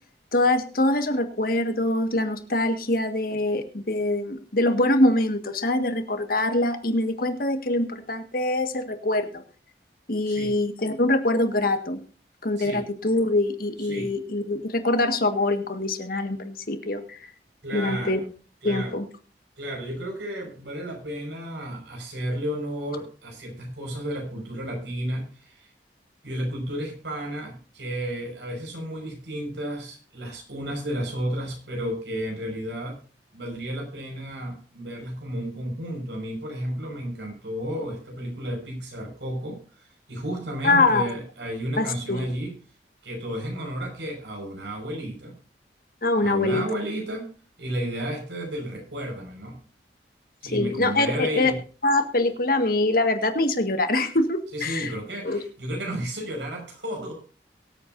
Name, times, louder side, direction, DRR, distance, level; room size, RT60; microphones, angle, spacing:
voice 1, 0.3-9.4 10.1-12.0 12.4-17.2 17.7-18.2 18.6-19.0 40.6-41.0 41.8-42.2 46.0-46.6 50.5-51.5 51.8-54.9 55.2-55.4, left 2 dB, 55° left, 7 dB, 1.7 m, -24 dB
voice 2, 17.6-18.3 18.6-19.0 19.6-25.7 26.2-33.0 33.3-42.5 43.0-45.4 46.2-47.3 47.6-49.6 50.4-51.6 54.5-57.1, equal, 90° right, 2 dB, 5.7 m, -32 dB
23.5 x 8.3 x 2.6 m, 0.38 s
head